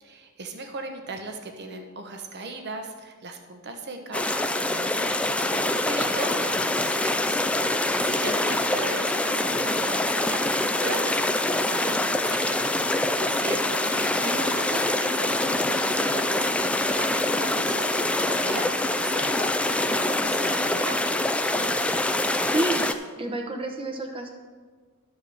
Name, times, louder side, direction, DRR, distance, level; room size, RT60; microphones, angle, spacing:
voice 1, 0.0-7.4 7.7-12.6 12.9-18.7 19.0-21.2, right 2 dB, 50° right, 5 dB, 1.1 m, -38 dB
sound 1, 4.1-22.9, left 1 dB, 5° left, 0.3 m, -25 dB
voice 2, 22.5-24.3, right 2 dB, 25° right, 3 dB, 1.0 m, -30 dB
12.0 x 4.6 x 7.0 m, 1.5 s
head